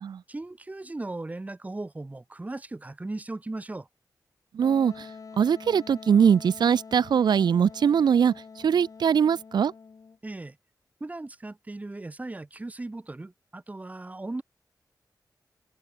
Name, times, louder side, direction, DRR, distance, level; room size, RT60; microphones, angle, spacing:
voice 1, 0.3-3.9 10.2-10.6 11.0-14.4, right 2 dB, 20° right, 4.3 m, -37 dB
voice 2, 4.5-5.1 5.4-8.3 8.6-9.7, right 7 dB, 80° right, 0.5 m, -22 dB
Wind instrument woodwind instrument, 4.6-10.2, left 5 dB, 50° left, 7.5 m, -46 dB
wide cardioid pair, 165°, 7 cm